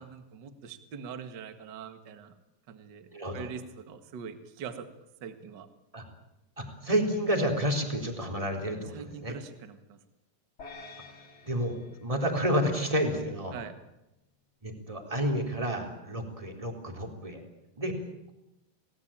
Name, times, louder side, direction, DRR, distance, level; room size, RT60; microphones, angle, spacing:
voice 1, 0.0-2.3 2.7-4.9 5.2-5.7 8.9-10.0 13.5-13.7, right 6 dB, 80° right, 9 dB, 0.9 m, -43 dB
voice 2, 3.1-3.5 5.9-6.0 6.6-9.3 11.4-13.6 14.6-17.4 17.8-18.0, equal, 10° right, 3 dB, 3.4 m, -30 dB
sound 1, 10.6-13.1, left 3 dB, 30° left, 4.4 m, -50 dB
29.0 x 18.5 x 8.9 m, 0.91 s
omnidirectional pair, 5.0 m